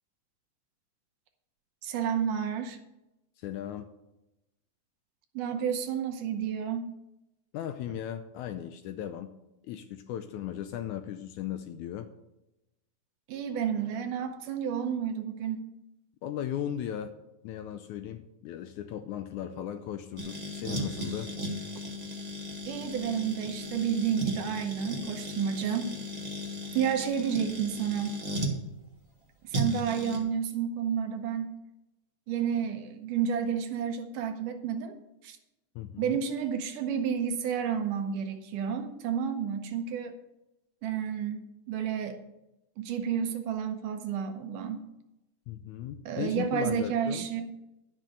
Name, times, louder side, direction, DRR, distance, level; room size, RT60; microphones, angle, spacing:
voice 1, 1.8-2.8 5.3-6.9 13.3-15.6 22.7-25.9 26.7-28.2 29.4-31.5 32.3-35.0 35.2-35.4 36.0-40.1 40.8-41.4 41.7-42.2 42.8-44.8 46.1-47.5, right 8 dB, 75° right, 6 dB, 2.3 m, -30 dB
voice 2, 3.4-3.9 7.5-9.3 9.6-12.1 16.2-17.1 17.4-21.3 35.7-36.1 45.5-47.3, left 10 dB, 90° left, 9 dB, 1.7 m, -37 dB
sound 1, 20.2-28.6 29.5-30.2, equal, 30° right, 0.7 m, -36 dB
12.5 x 6.3 x 6.7 m, 0.93 s
omnidirectional pair, 4.1 m